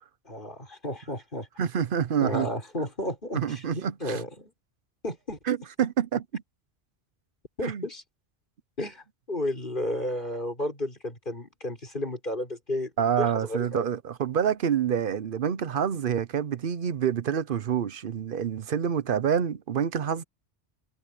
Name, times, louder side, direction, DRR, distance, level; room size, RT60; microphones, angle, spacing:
voice 1, 0.2-1.5 2.2-4.5 5.0-5.4 7.6-8.0 8.8-12.9 13.2-13.8, left 1 dB, 45° left, 6.1 m, -32 dB
voice 2, 1.6-2.5 3.3-4.2 5.5-6.4 7.6-7.8 13.0-20.2, right 8 dB, 55° right, 0.8 m, -27 dB
omnidirectional pair, 1.2 m